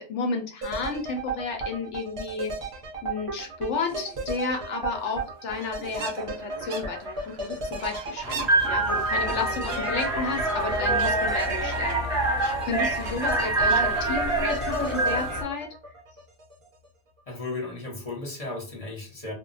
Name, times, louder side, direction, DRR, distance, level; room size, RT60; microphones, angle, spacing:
voice 1, 0.0-2.7 3.0-12.0 12.6-15.7, left 4 dB, 70° left, 3 dB, 0.8 m, -32 dB
sound 1, 0.6-16.5 16.8-16.9, right 3 dB, 40° right, 0.4 m, -34 dB
sound 2, 3.9-4.2 4.9-5.0 5.2-5.3 5.6-15.5, right 5 dB, 60° right, 0.8 m, -39 dB
sound 3, 8.2-15.4, right 2 dB, 25° right, 0.8 m, -26 dB
voice 2, 17.3-19.3, left 2 dB, 35° left, -1 dB, 0.7 m, -35 dB
2.2 x 2.1 x 3.8 m, 0.35 s
omnidirectional pair, 1.4 m